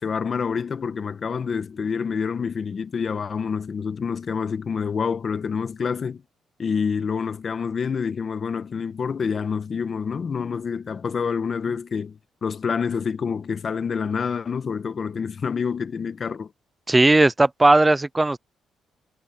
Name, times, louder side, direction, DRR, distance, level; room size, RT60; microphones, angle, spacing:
voice 1, 0.0-6.2 6.6-16.5, left 6 dB, 45° left, 1.4 m, -27 dB
voice 2, 16.9-18.4, right 2 dB, 15° right, 0.5 m, -17 dB
cardioid pair, 90°, 0 cm